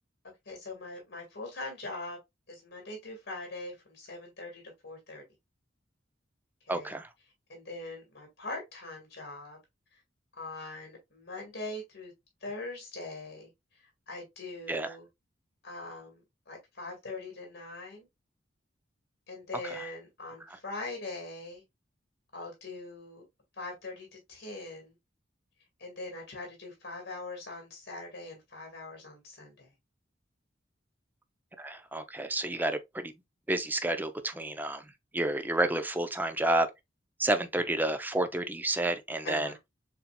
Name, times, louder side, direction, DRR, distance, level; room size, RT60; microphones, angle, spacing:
voice 1, 0.5-2.2 2.5-5.2 6.7-7.0 7.5-9.6 10.4-12.1 12.4-13.5 13.8-15.1 15.6-18.1 19.3-21.6 22.3-23.2 23.6-24.9 25.8-29.7 39.2-39.6, left 2 dB, 60° left, 2.0 m, -42 dB
voice 2, 6.7-7.1 14.7-14.9 31.6-33.1 33.5-34.8 35.1-36.7 37.2-39.5, right 1 dB, 10° right, 0.5 m, -30 dB
6.8 x 2.8 x 2.2 m
head